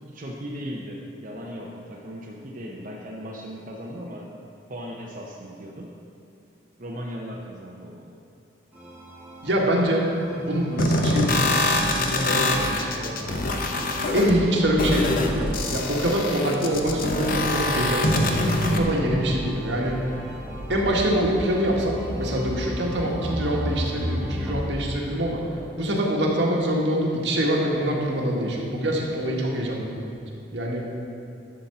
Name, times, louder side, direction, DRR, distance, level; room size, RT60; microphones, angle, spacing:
voice 1, 0.0-4.3 4.7-5.9 6.8-8.1, equal, 50° right, -2 dB, 0.8 m, -37 dB
sound 1, 8.7-24.7, equal, 10° right, 2.2 m, -35 dB
voice 2, 9.4-10.1 10.3-13.4 14.1-20.0 20.7-25.4 25.7-30.2 30.5-30.9, equal, 80° right, -2 dB, 1.6 m, -25 dB
sound 2, 10.8-18.8, left 2 dB, 55° left, 0.8 m, -24 dB
11.5 x 4.3 x 6.8 m, 2.5 s
head